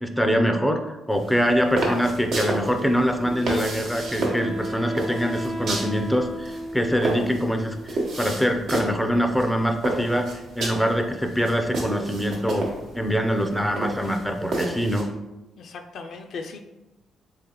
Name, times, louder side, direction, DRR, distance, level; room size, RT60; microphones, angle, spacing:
voice 1, 0.0-10.3 10.6-12.7 12.9-15.1, equal, ahead, 5 dB, 0.4 m, -24 dB
sound 1, 1.1-15.0, right 2 dB, 75° right, 0.9 m, -32 dB
Wind instrument woodwind instrument, 3.2-8.2, equal, 45° right, 1.0 m, -34 dB
voice 2, 15.6-16.6, left 4 dB, 65° left, 5 dB, 0.4 m, -37 dB
3.7 x 3.2 x 2.9 m, 1.0 s
cardioid pair, 90°, 0 cm